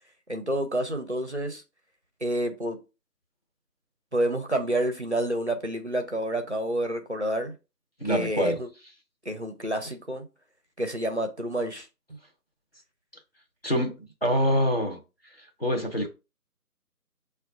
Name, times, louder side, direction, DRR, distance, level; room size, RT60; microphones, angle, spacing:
voice 1, 0.3-1.6 2.2-2.8 4.1-7.5 8.0-8.7 9.2-10.3 10.8-11.9, right 1 dB, 50° right, 0.5 m, -29 dB
voice 2, 8.0-8.6 13.6-13.9 14.2-15.0 15.6-16.1, equal, 40° left, 0.6 m, -24 dB
6.1 x 2.2 x 2.5 m
figure-of-eight pair, 160°, 47 cm